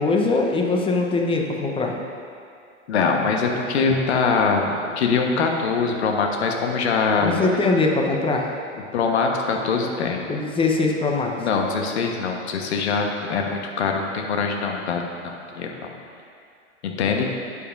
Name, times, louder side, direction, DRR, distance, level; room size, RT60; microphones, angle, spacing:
voice 1, 0.0-2.0 7.2-8.5 10.3-11.3, left 3 dB, 15° left, 1 dB, 0.9 m, -22 dB
voice 2, 2.9-7.4 8.9-10.3 11.4-15.9 16.8-17.3, left 4 dB, 60° left, 2 dB, 1.2 m, -23 dB
12.0 x 8.4 x 2.6 m, 2.4 s
figure-of-eight pair, 95°, 37 cm